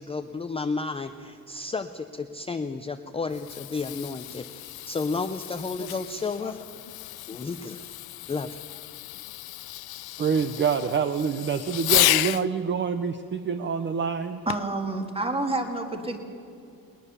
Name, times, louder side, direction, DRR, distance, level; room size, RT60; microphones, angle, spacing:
voice 1, 0.0-4.6 4.9-6.6 7.3-7.9 8.2-8.6, left 4 dB, 15° left, 8 dB, 0.4 m, -32 dB
Fireworks, 3.1-12.5 14.5-14.8 15.5-15.6, left 17 dB, 85° left, 0.5 m, -31 dB
voice 2, 10.2-14.4, right 6 dB, 30° right, 9 dB, 0.6 m, -26 dB
voice 3, 14.5-16.2, right 2 dB, 15° right, 5 dB, 1.7 m, -28 dB
20.0 x 19.5 x 6.8 m, 2.7 s
wide cardioid pair, 175°, 36 cm